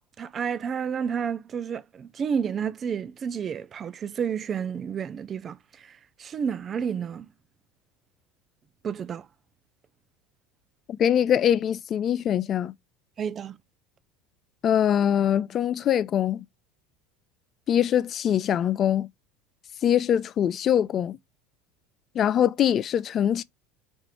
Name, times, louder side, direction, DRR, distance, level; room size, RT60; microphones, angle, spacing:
voice 1, 0.2-5.9 6.2-7.3 8.8-9.3 13.2-13.6, right 7 dB, 35° right, 0.4 m, -30 dB
voice 2, 11.0-12.7 14.6-16.4 17.7-19.1 19.8-21.2 22.2-23.4, left 10 dB, 40° left, 0.4 m, -23 dB
4.4 x 2.5 x 4.8 m
hypercardioid pair, 95°, 0 cm